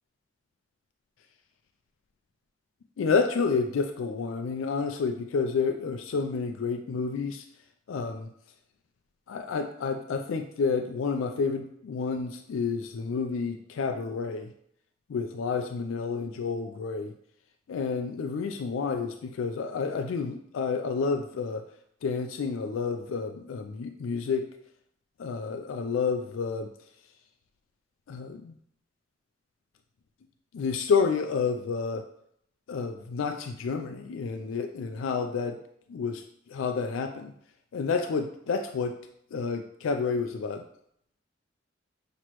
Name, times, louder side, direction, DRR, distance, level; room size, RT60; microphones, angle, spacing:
voice 1, 3.0-7.4 7.9-8.3 9.3-14.5 15.1-17.1 17.7-21.6 22.0-24.4 25.2-26.7 28.1-28.5 30.5-32.0 32.7-35.6 35.9-37.3 37.7-39.0 39.3-40.6, left 5 dB, 85° left, 6 dB, 0.4 m, -29 dB
6.0 x 3.0 x 2.9 m, 0.70 s
head